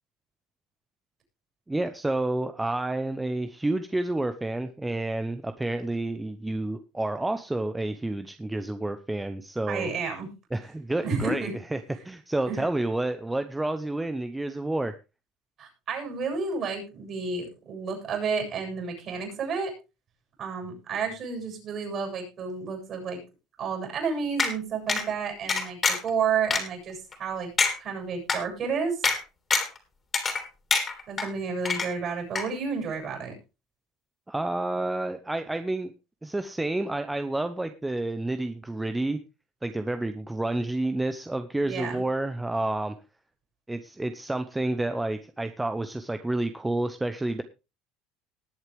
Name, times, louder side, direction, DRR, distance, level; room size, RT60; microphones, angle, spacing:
voice 1, 1.7-9.9 10.5-14.9 34.3-35.9 36.2-39.2 39.6-42.9 43.7-47.4, right 2 dB, 10° right, 9 dB, 0.8 m, -29 dB
voice 2, 9.7-10.3 11.0-11.5 12.5-12.6 15.6-19.7 20.4-23.2 23.6-27.5 27.8-29.1 31.1-33.3 41.6-42.0, right 5 dB, 45° right, 3 dB, 7.1 m, -31 dB
sound 1, 24.4-24.5 24.9-25.0 25.5-26.1 26.5-26.6 27.1-27.2 27.6-27.7 28.3-28.4 29.0-29.2 29.5-29.8 30.1-30.4 30.7-31.3 31.6-32.1 32.3-32.4, left 4 dB, 25° left, 3.2 m, -24 dB
19.5 x 8.0 x 3.5 m, 0.28 s
supercardioid pair, 120°, 0 cm